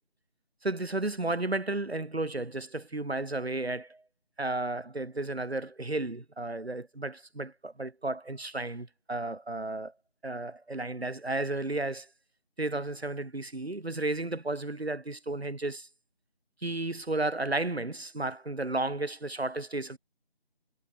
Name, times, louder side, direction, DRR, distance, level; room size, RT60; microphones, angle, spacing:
voice 1, 0.6-4.0 4.4-9.9 10.2-12.1 12.6-15.9 16.6-20.0, right 2 dB, 90° right, 2.3 m, -33 dB
figure-of-eight pair, 170°, 31 cm